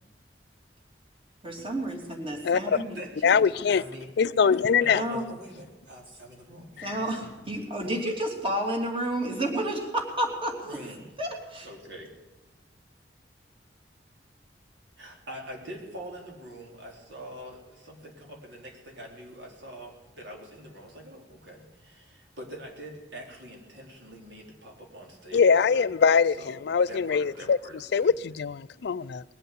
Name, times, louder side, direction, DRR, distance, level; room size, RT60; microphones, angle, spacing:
voice 1, 1.4-3.0 4.9-5.3 6.1-6.2 6.8-10.8 11.2-11.7, right 1 dB, 30° right, 2.8 m, -31 dB
voice 2, 2.7-4.1 4.4-6.8 10.7-11.1 11.6-12.1 15.0-28.1, equal, 75° right, 3.8 m, -44 dB
voice 3, 3.2-3.8 4.2-5.0 25.3-27.6 27.9-29.2, left 6 dB, 65° left, 0.4 m, -22 dB
21.0 x 8.1 x 7.9 m
head